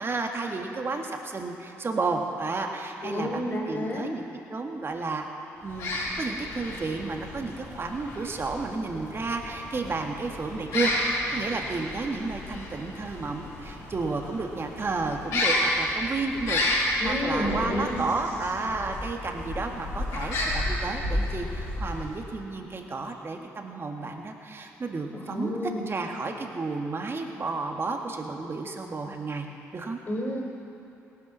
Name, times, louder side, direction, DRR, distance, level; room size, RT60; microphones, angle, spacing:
voice 1, 0.0-5.2 5.6-25.6 25.9-29.5 29.7-30.0, right 3 dB, 40° right, 3 dB, 1.9 m, -32 dB
voice 2, 3.0-4.1 17.0-18.0 25.1-25.8 30.1-30.4, left 1 dB, 35° left, -4 dB, 3.9 m, -30 dB
sound 1, 5.6-22.4, left 1 dB, 85° left, 4.5 m, -31 dB
17.5 x 10.5 x 6.3 m, 2.9 s
supercardioid pair, 55°, 6 cm